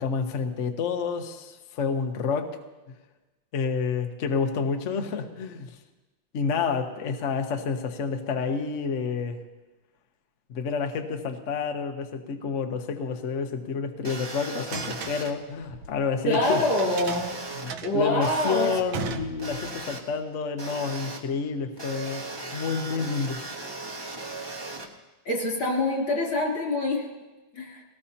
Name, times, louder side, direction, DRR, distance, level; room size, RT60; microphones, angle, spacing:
voice 1, 0.0-2.5 3.5-5.8 6.3-9.4 10.5-16.6 17.6-23.4, left 5 dB, 50° left, 5 dB, 1.0 m, -29 dB
sound 1, 14.0-15.3 16.4-17.7 18.2-18.8 19.4-20.0 20.6-21.2 21.8-24.9, right 2 dB, 20° right, 0.8 m, -37 dB
sound 2, 14.7-16.4 16.8-19.9, right 6 dB, 80° right, 1.7 m, -37 dB
voice 2, 16.2-17.3 17.8-18.7 25.3-27.1 27.5-27.8, left 1 dB, 85° left, -2 dB, 4.0 m, -25 dB
20.0 x 18.0 x 2.9 m, 1.1 s
omnidirectional pair, 2.2 m